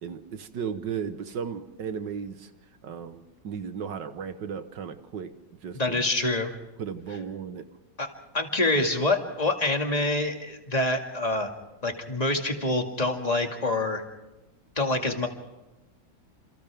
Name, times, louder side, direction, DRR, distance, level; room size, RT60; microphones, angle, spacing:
voice 1, 0.0-2.5 2.8-6.0 6.8-7.6, right 7 dB, 65° right, 10 dB, 1.8 m, -35 dB
voice 2, 5.7-6.6 8.0-8.1 8.3-11.5 11.8-14.0 14.8-15.3, left 2 dB, 20° left, 3 dB, 2.2 m, -26 dB
29.5 x 28.0 x 3.6 m, 1.0 s
omnidirectional pair, 2.1 m